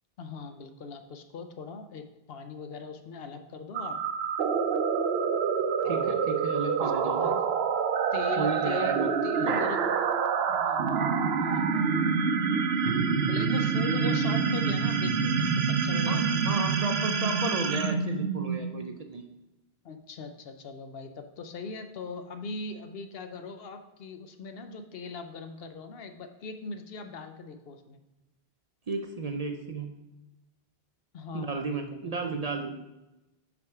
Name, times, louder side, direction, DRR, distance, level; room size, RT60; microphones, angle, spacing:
voice 1, 0.2-4.0 5.8-7.4 8.1-9.9 10.5-11.0 11.4-11.9 13.3-16.6 19.8-28.0 31.1-32.4, left 4 dB, 75° left, 7 dB, 0.9 m, -40 dB
sound 1, 3.7-18.9, right 6 dB, 80° right, 0.8 m, -27 dB
voice 2, 5.8-7.3 8.4-9.1 9.4-9.7 16.1-16.2 16.4-19.3 28.9-30.0 31.3-32.8, right 3 dB, 45° right, 5 dB, 0.5 m, -33 dB
5.9 x 5.2 x 4.6 m, 1.0 s
omnidirectional pair, 1.0 m